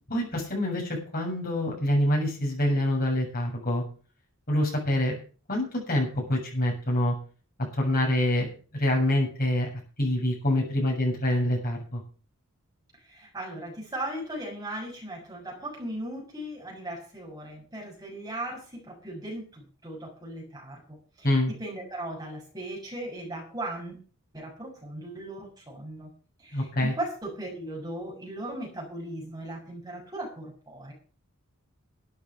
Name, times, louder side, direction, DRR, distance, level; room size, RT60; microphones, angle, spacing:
voice 1, 0.1-3.8 4.5-5.2 5.5-7.1 7.7-9.7 10.0-12.0 21.2-21.5 26.5-26.9, left 1 dB, 40° left, -1 dB, 7.2 m, -26 dB
voice 2, 13.0-24.0 24.3-26.1 26.4-30.9, right 1 dB, 20° right, -2 dB, 7.2 m, -38 dB
13.0 x 8.9 x 6.9 m, 0.39 s
head